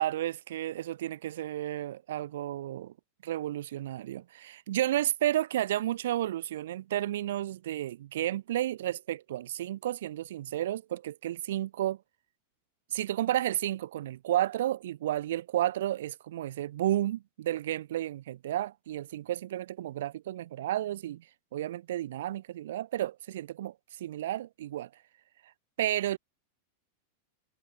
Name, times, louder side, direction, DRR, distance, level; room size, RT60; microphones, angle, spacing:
voice 1, 0.0-2.9 3.2-12.0 12.9-21.2 21.5-23.7 24.0-24.9 25.8-26.2, right 13 dB, 60° right, 0.4 m, -32 dB
figure-of-eight pair, 90°, 0 cm